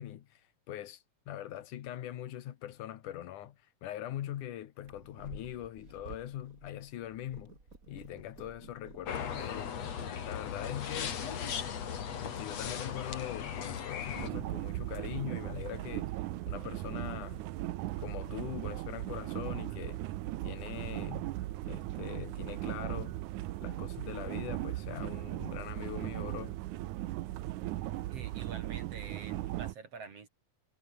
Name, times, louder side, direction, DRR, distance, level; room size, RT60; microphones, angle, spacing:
voice 1, 0.0-7.6 7.9-9.7 10.3-11.2 12.2-16.1 16.5-17.4 18.0-20.0 20.4-21.3 21.7-23.2 23.6-26.6, left 12 dB, 80° left, 2.9 m, -42 dB
Purr, 4.8-22.8, right 3 dB, 25° right, 4.0 m, -58 dB
sound 1, 9.1-14.3, left 7 dB, 55° left, 3.4 m, -37 dB
sound 2, 14.1-29.7, right 16 dB, 80° right, 2.2 m, -38 dB
voice 2, 28.1-30.3, right 5 dB, 50° right, 3.6 m, -47 dB
omnidirectional pair, 3.5 m